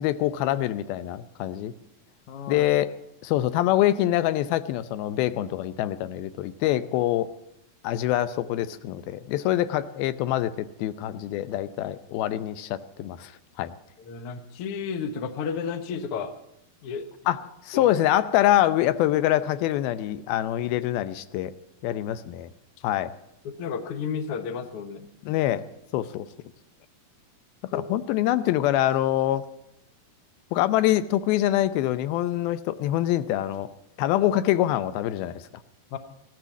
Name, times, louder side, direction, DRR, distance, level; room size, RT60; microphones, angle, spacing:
voice 1, 0.0-1.7 2.5-2.9 3.2-7.3 7.8-13.3 13.6-13.7 17.3-21.5 21.8-22.5 22.8-23.1 25.2-25.7 25.9-26.3 27.7-29.5 30.5-33.7 34.0-35.4, left 13 dB, 90° left, 14 dB, 2.6 m, -25 dB
voice 2, 2.3-2.7 14.0-16.3 16.8-17.1 17.7-17.9 23.4-25.1 27.7-27.8 35.9-36.0, left 6 dB, 70° left, 9 dB, 1.3 m, -32 dB
16.5 x 12.0 x 7.2 m, 0.81 s
omnidirectional pair, 4.2 m